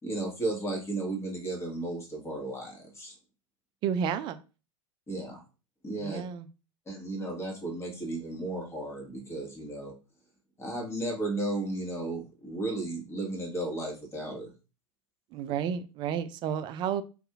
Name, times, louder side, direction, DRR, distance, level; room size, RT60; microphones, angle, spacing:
voice 1, 0.0-3.2 5.1-5.4 5.8-6.2 6.9-9.9 10.6-14.5, right 2 dB, 15° left, 0 dB, 1.3 m, -34 dB
voice 2, 3.8-4.4 6.0-6.5 15.3-17.0, right 8 dB, 25° right, 10 dB, 0.3 m, -31 dB
2.7 x 2.5 x 3.5 m, 0.32 s
figure-of-eight pair, 90°, 17 cm